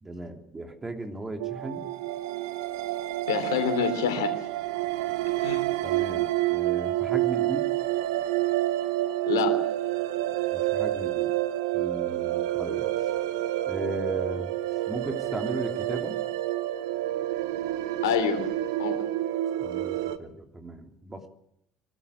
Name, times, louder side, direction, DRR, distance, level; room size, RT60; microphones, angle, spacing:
voice 1, 0.0-1.9 5.8-7.7 10.5-11.3 11.7-12.9 13.7-14.6 14.9-16.2 19.6-21.3, right 2 dB, 20° right, 4 dB, 3.2 m, -36 dB
sound 1, 1.4-20.2, right 15 dB, 80° right, 1.0 m, -28 dB
voice 2, 3.3-4.3 5.4-5.6 9.3-9.6 18.0-18.4 18.8-18.9, left 8 dB, 80° left, 7 dB, 3.2 m, -26 dB
23.0 x 13.5 x 8.4 m, 0.79 s
hypercardioid pair, 65°, 2 cm